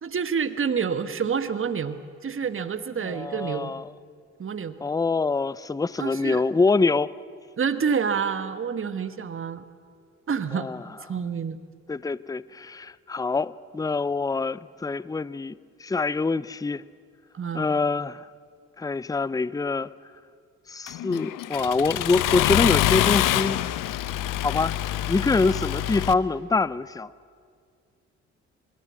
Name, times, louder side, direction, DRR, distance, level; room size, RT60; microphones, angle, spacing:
voice 1, 0.0-3.7 4.4-4.7 6.0-6.4 7.6-9.6 10.3-10.7 11.1-11.6 17.3-17.7, right 6 dB, 40° right, 1.4 m, -28 dB
voice 2, 3.0-3.9 4.8-7.1 10.5-10.8 11.9-15.5 15.8-16.8 17.5-18.3 18.8-19.9 20.7-23.6 24.4-24.7 25.1-27.1, left 3 dB, 10° left, 0.6 m, -25 dB
Accelerating revving vroom, 20.9-26.1, left 13 dB, 65° left, 0.9 m, -25 dB
24.5 x 22.0 x 7.4 m
hypercardioid pair, 50°, 34 cm